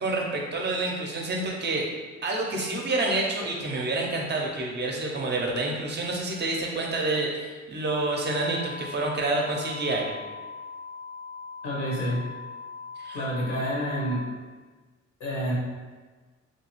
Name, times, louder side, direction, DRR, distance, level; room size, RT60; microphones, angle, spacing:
voice 1, 0.0-1.9 2.2-10.1 13.0-13.2, right 2 dB, 35° right, -1 dB, 0.5 m, -28 dB
sound 1, 7.9-14.1, left 5 dB, 5° left, 0.6 m, -41 dB
voice 2, 11.6-12.2 13.1-14.2 15.2-15.6, equal, 75° left, -6 dB, 1.2 m, -28 dB
2.7 x 2.2 x 3.0 m, 1.4 s
cardioid pair, 90°, 30 cm